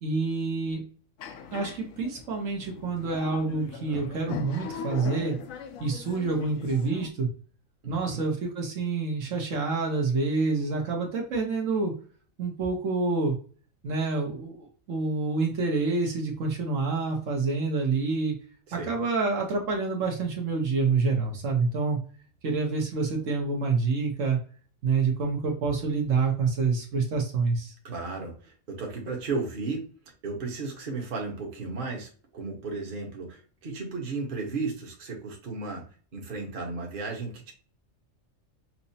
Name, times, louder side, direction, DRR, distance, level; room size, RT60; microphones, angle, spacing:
voice 1, 0.0-0.8 1.5-5.3 5.8-7.3 7.9-11.9 12.4-13.4 13.8-18.3 18.7-22.0 22.4-24.4 24.8-27.7, right 4 dB, 70° right, 1 dB, 1.3 m, -27 dB
sound 1, 1.2-7.1, left 6 dB, 80° left, 1.0 m, -40 dB
voice 2, 7.8-8.2 18.7-18.9 27.8-29.9 30.2-35.8 36.1-37.5, right 3 dB, 45° right, 0 dB, 1.1 m, -34 dB
5.8 x 2.0 x 2.7 m, 0.41 s
omnidirectional pair, 1.4 m